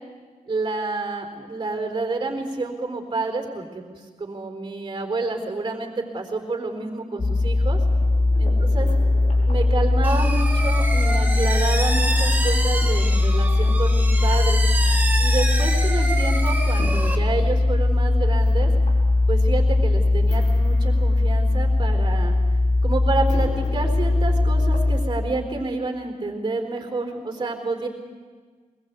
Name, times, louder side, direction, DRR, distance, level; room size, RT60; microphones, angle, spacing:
voice 1, 0.5-7.8 8.4-8.9 9.5-14.7 15.2-18.7 19.3-22.3 22.8-27.9, right 3 dB, 35° right, 4 dB, 4.0 m, -29 dB
sound 1, 7.2-25.0, left 2 dB, 65° left, 4.8 m, -20 dB
sound 2, 10.0-17.2, right 2 dB, 15° right, 1.9 m, -28 dB
23.0 x 21.5 x 8.2 m, 1.5 s
wide cardioid pair, 155°, 14 cm